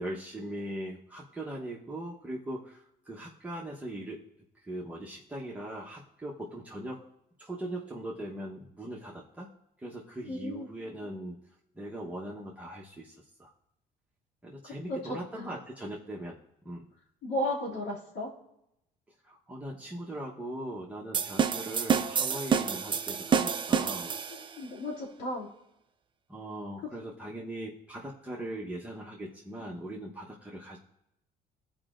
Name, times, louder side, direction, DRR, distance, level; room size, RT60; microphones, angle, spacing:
voice 1, 0.0-4.2 4.6-7.1 7.4-9.5 9.8-11.4 11.7-13.5 14.4-16.4 16.6-16.9 19.2-24.1 26.3-30.8, right 1 dB, 10° right, -5 dB, 1.1 m, -40 dB
voice 2, 10.3-10.7 14.6-15.4 17.2-18.3 24.0-25.5, left 1 dB, 75° left, -4 dB, 2.6 m, -35 dB
sound 1, 21.1-24.6, right 7 dB, 30° right, 0.4 m, -28 dB
15.0 x 5.0 x 2.5 m, 0.83 s
cardioid pair, 110°, 17 cm